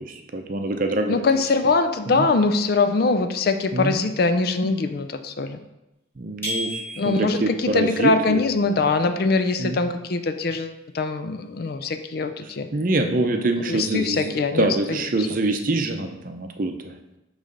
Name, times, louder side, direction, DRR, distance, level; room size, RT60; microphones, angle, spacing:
voice 1, 0.0-1.2 2.1-2.3 3.7-4.0 6.2-8.4 9.6-9.8 12.7-17.0, right 2 dB, 45° right, 5 dB, 0.6 m, -25 dB
voice 2, 1.1-5.6 7.0-12.7 13.3-13.4 13.7-15.0 15.3-15.4, left 3 dB, 50° left, 9 dB, 0.4 m, -23 dB
sound 1, 6.4-7.5, left 1 dB, 10° left, 2.1 m, -31 dB
6.4 x 3.2 x 5.2 m, 0.94 s
head